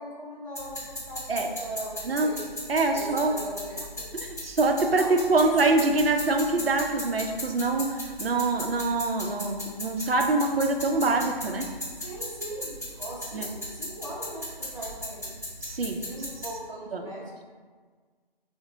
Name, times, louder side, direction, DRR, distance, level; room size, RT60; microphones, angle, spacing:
voice 1, 0.0-2.4 2.9-4.1 5.0-5.7 12.0-15.4 15.9-17.3, right 1 dB, 35° right, -9 dB, 0.8 m, -40 dB
sound 1, 0.6-16.5, left 1 dB, 15° left, 0.8 m, -38 dB
voice 2, 2.7-3.3 4.2-7.9 8.2-11.7 13.3-13.5 15.6-16.0 16.9-17.0, right 3 dB, 80° right, 3 dB, 0.5 m, -24 dB
3.9 x 2.1 x 2.8 m, 1.5 s
figure-of-eight pair, 175°, 29 cm